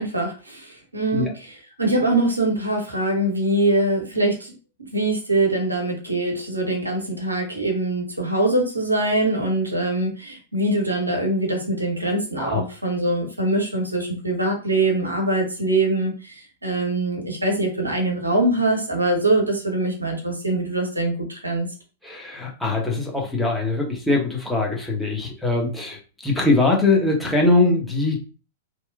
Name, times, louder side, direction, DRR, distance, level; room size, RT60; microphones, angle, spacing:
voice 1, 0.0-1.3 1.8-4.5 4.8-21.7, right 2 dB, 90° right, 1 dB, 0.8 m, -23 dB
voice 2, 22.0-28.2, left 2 dB, 5° left, -1 dB, 0.8 m, -22 dB
2.9 x 2.1 x 2.3 m, 0.35 s
figure-of-eight pair, 100°, 0 cm